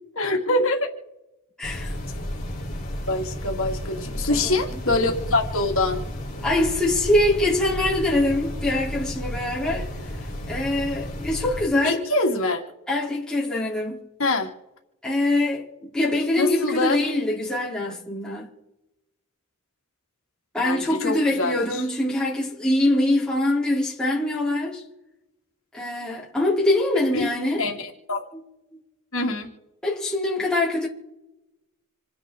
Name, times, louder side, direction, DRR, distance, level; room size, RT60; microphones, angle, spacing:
voice 1, 0.2-0.9 3.1-6.1 11.8-12.6 14.2-14.5 16.4-17.0 20.6-21.8 27.1-27.3 27.6-28.2 29.1-29.5, left 2 dB, 70° left, 2.3 m, -24 dB
sound 1, 1.6-11.6, equal, 35° left, 3.8 m, -33 dB
voice 2, 1.6-1.9 4.3-4.8 6.4-9.9 10.5-12.0 12.9-14.0 15.0-18.5 20.5-24.8 25.7-27.6 28.3-28.4 29.8-30.9, left 1 dB, 5° left, 3.4 m, -24 dB
28.0 x 10.5 x 3.8 m
head